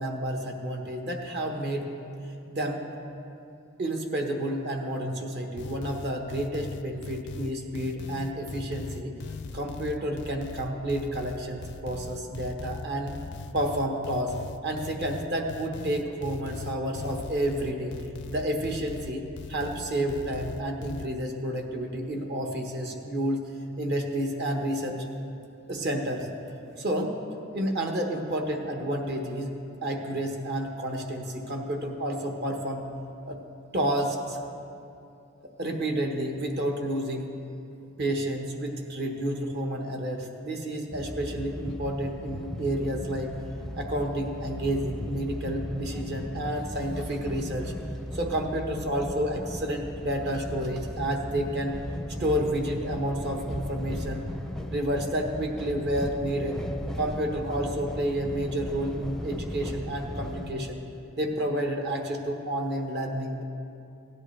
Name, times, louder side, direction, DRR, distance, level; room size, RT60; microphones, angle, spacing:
voice 1, 0.0-1.9 2.5-2.8 3.8-9.1 9.5-13.2 13.5-14.4 14.6-18.0 18.3-23.4 23.8-25.0 25.7-26.3 26.8-27.1 27.5-29.5 29.8-32.9 33.2-33.4 33.7-34.4 35.4-37.3 38.0-43.3 43.8-47.7 48.1-51.8 52.2-54.3 54.7-56.6 57.0-60.8 61.2-63.4, right 1 dB, 55° right, 2 dB, 1.2 m, -30 dB
sound 1, 5.6-21.1, left 4 dB, 55° left, 0.4 m, -40 dB
sound 2, 40.9-60.5, equal, ahead, 0.5 m, -37 dB
16.5 x 10.5 x 3.3 m, 2.7 s
head